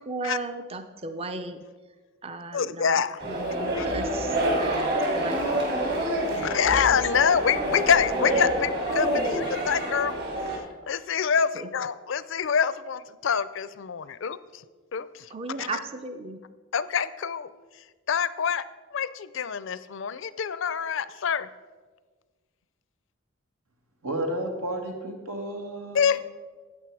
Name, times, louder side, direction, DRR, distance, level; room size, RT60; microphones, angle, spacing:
voice 1, 0.1-1.6 2.2-2.9 3.3-5.6 6.3-6.4 6.7-6.8 11.6-11.7 15.3-16.4, right 3 dB, 25° right, 9 dB, 0.5 m, -36 dB
voice 2, 2.5-3.2 3.7-3.9 6.3-10.1 10.9-14.6 14.9-15.3 15.6-15.8 16.7-17.5 18.1-18.6 18.9-21.5 25.9-26.2, left 7 dB, 60° left, 16 dB, 0.4 m, -26 dB
sound 1, 3.2-10.6, right 1 dB, 50° right, 2.8 m, -27 dB
voice 3, 24.0-26.2, right 1 dB, 90° right, 3 dB, 2.0 m, -32 dB
13.5 x 8.9 x 4.7 m, 1.4 s
head